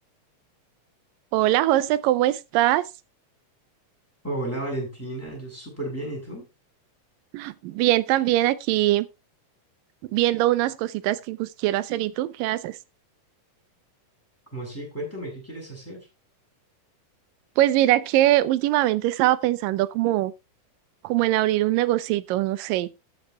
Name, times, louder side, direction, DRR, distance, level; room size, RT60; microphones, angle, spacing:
voice 1, 1.3-2.8 7.3-9.1 10.1-12.8 17.6-20.3 21.0-22.9, right 15 dB, 85° right, 2.4 m, -22 dB
voice 2, 4.2-6.5 14.5-16.1, right 1 dB, 5° left, 6.9 m, -33 dB
13.5 x 8.5 x 3.4 m
omnidirectional pair, 3.9 m